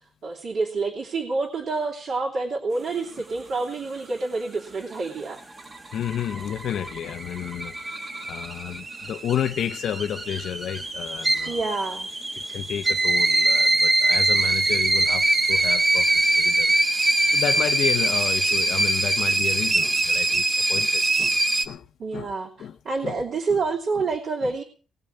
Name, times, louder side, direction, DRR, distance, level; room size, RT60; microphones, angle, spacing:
voice 1, 0.2-5.4 11.5-12.1 22.0-24.6, right 3 dB, 55° right, 3.0 m, -28 dB
sound 1, 5.4-21.7, right 2 dB, 25° right, 1.4 m, -23 dB
voice 2, 5.9-7.9 8.3-11.7 12.5-16.7 17.3-21.4 21.6-21.9 22.1-22.3 22.6-23.2 23.5-23.6 24.0-24.1 24.4-24.6, left 9 dB, 70° left, 0.6 m, -31 dB
19.5 x 6.6 x 8.8 m
wide cardioid pair, 175°, 0 cm